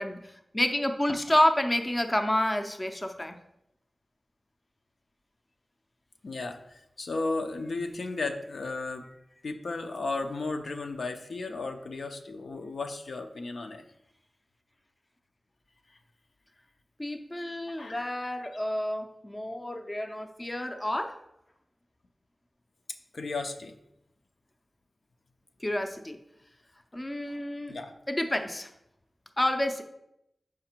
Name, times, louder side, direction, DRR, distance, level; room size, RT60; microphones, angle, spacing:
voice 1, 0.0-3.4 17.0-21.2 25.6-26.2 26.9-27.7 28.1-28.7 29.4-29.8, left 1 dB, 20° left, 5 dB, 0.5 m, -29 dB
voice 2, 6.2-9.1 9.4-13.8 17.8-18.1 23.1-23.7 27.7-27.9, left 3 dB, 75° left, 4 dB, 0.6 m, -34 dB
5.8 x 4.8 x 4.4 m, 0.82 s
wide cardioid pair, 105°, 0 cm